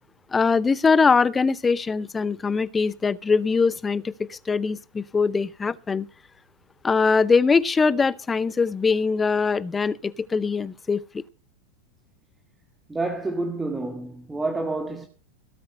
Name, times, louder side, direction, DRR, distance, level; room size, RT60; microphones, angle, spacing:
voice 1, 0.3-6.1 6.8-11.2, left 4 dB, 15° left, 0.6 m, -22 dB
voice 2, 12.9-15.1, right 2 dB, 10° right, 1.5 m, -28 dB
17.0 x 8.5 x 5.3 m
figure-of-eight pair, 90°, 0 cm